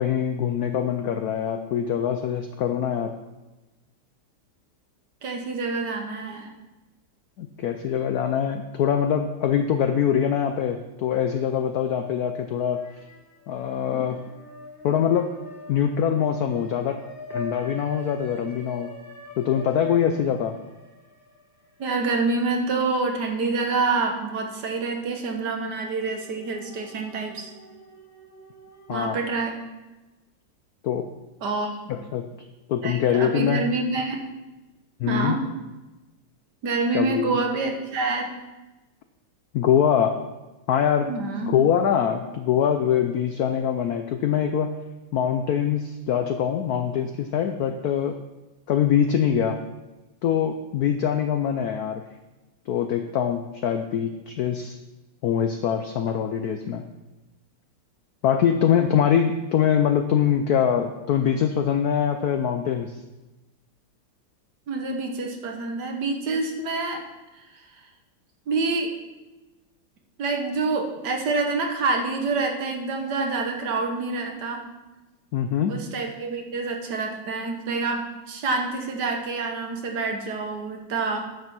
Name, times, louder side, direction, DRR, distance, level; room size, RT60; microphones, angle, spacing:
voice 1, 0.0-3.2 7.4-12.8 13.5-14.3 14.8-15.3 15.7-17.0 17.3-18.9 19.4-20.6 28.9-29.2 30.8-31.1 31.9-32.3 32.7-33.6 35.0-35.4 36.9-37.3 39.5-40.2 40.7-41.1 41.5-44.7 45.1-48.2 48.7-49.6 50.2-52.0 52.7-54.8 55.2-56.8 58.2-63.0 75.3-75.8, left 8 dB, 75° left, 7 dB, 0.8 m, -23 dB
voice 2, 5.2-6.5 21.8-27.5 28.9-29.6 31.4-32.0 32.8-34.2 35.1-35.4 36.6-38.3 41.1-41.5 64.7-67.0 67.3-67.5 67.7-67.8 68.5-68.9 70.2-74.6 75.7-81.2, right 3 dB, 60° right, 3 dB, 1.7 m, -27 dB
sound 1, 12.7-13.5 13.9-24.2 24.6-24.7 25.8-29.2, left 2 dB, 10° left, 1.7 m, -44 dB
9.6 x 6.8 x 6.0 m, 1.1 s
omnidirectional pair, 2.2 m